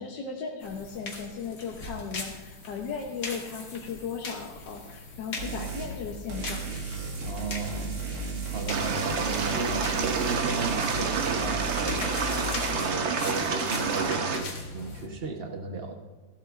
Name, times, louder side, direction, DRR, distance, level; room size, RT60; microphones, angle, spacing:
voice 1, 0.0-6.7, left 5 dB, 65° left, -1 dB, 1.5 m, -36 dB
sound 1, 0.6-15.1, left 3 dB, 45° left, 1.8 m, -41 dB
sound 2, 5.4-5.9 6.3-12.8, right 3 dB, 80° right, 2.6 m, -35 dB
voice 2, 7.2-7.9 8.4-12.3 12.7-15.9, right 4 dB, 40° right, 3 dB, 0.9 m, -34 dB
sound 3, 8.7-14.4, right 5 dB, 65° right, 0.7 m, -29 dB
15.0 x 12.0 x 2.5 m, 1.2 s
omnidirectional pair, 2.3 m